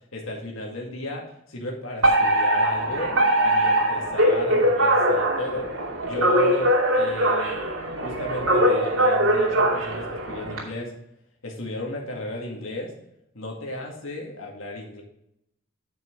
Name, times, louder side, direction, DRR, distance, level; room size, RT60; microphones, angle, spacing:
voice 1, 0.1-3.1 3.4-5.7 6.0-7.7 8.0-10.9 11.4-12.9 13.3-15.0, left 1 dB, 85° left, 0 dB, 2.1 m, -33 dB
Alarm, 2.0-10.6, right 1 dB, 90° right, 2.7 m, -21 dB
9.4 x 6.0 x 3.8 m, 0.79 s
head